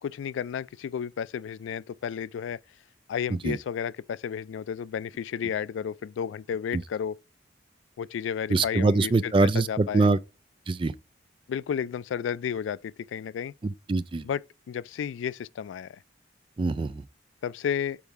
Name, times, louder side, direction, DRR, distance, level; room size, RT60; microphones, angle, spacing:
voice 1, 0.0-2.6 3.1-7.2 8.0-9.3 9.7-10.2 11.5-13.5 14.2-14.4 14.7-16.0 17.4-18.0, left 8 dB, 90° left, 0.3 m, -32 dB
voice 2, 8.5-10.2 10.7-10.9 13.6-14.2 16.6-17.0, right 3 dB, 25° right, 0.3 m, -24 dB
7.1 x 4.6 x 4.6 m
head